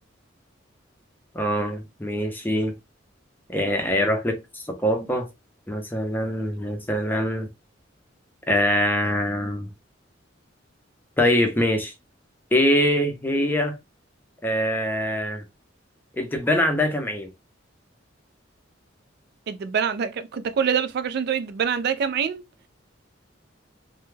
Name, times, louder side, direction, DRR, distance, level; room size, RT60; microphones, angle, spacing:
voice 1, 1.3-2.7 3.5-5.3 5.7-7.5 8.5-9.7 11.2-11.9 12.5-13.7 14.4-15.4 16.1-17.3, equal, 10° left, 0.5 m, -23 dB
voice 2, 19.5-22.4, right 7 dB, 55° right, 0.3 m, -25 dB
2.2 x 2.1 x 3.1 m
head